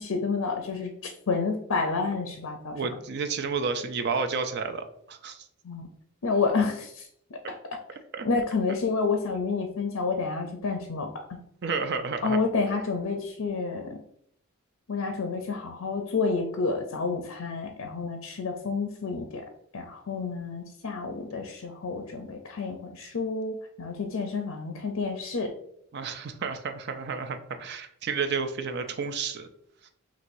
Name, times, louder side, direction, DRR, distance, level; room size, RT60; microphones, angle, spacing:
voice 1, 0.0-2.9 5.6-5.9 6.2-7.4 8.2-11.1 12.2-14.0 14.9-19.4 19.7-25.5, left 4 dB, 70° left, 4 dB, 0.5 m, -29 dB
voice 2, 2.7-5.5 8.1-8.3 11.6-12.4 25.9-29.5 29.8-29.9, right 5 dB, 50° right, 7 dB, 0.4 m, -31 dB
5.9 x 3.0 x 2.6 m, 0.70 s
head